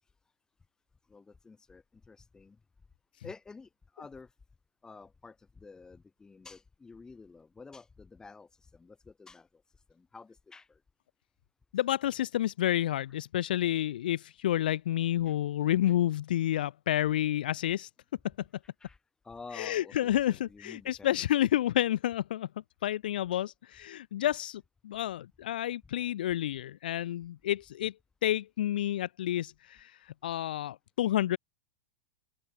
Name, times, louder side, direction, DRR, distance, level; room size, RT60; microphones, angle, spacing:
voice 1, 1.1-2.6 3.2-4.3 4.8-10.8 15.2-15.3 15.9-16.0 18.8-19.0 19.2-21.3, left 4 dB, 10° left, 3.0 m, -50 dB
voice 2, 11.7-17.9 19.5-22.5 22.8-27.9 28.2-31.4, left 12 dB, 55° left, 0.7 m, -30 dB
figure-of-eight pair, 95°, 6 cm